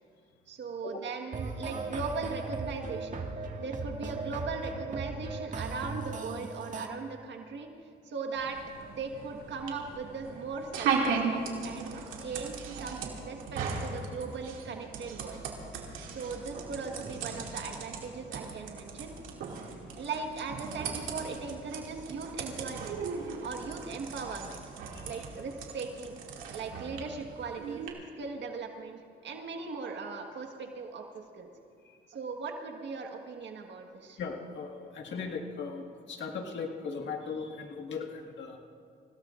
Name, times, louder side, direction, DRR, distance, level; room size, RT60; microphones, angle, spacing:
voice 1, 0.5-3.2 3.6-7.7 8.0-8.6 8.9-15.4 16.1-19.1 20.0-23.0 23.4-24.6 25.0-26.2 26.5-27.8 28.2-31.0 31.3-31.5 32.1-34.2, right 4 dB, 65° right, 3 dB, 1.5 m, -39 dB
sound 1, 1.3-6.9, right 3 dB, 40° right, 1.6 m, -37 dB
sound 2, 8.3-27.9, right 5 dB, 90° right, 2.4 m, -37 dB
voice 2, 24.9-25.2 31.8-32.0 34.2-38.6, left 5 dB, 65° left, 1 dB, 1.7 m, -38 dB
28.0 x 17.0 x 2.5 m, 2.3 s
cardioid pair, 90°, 20 cm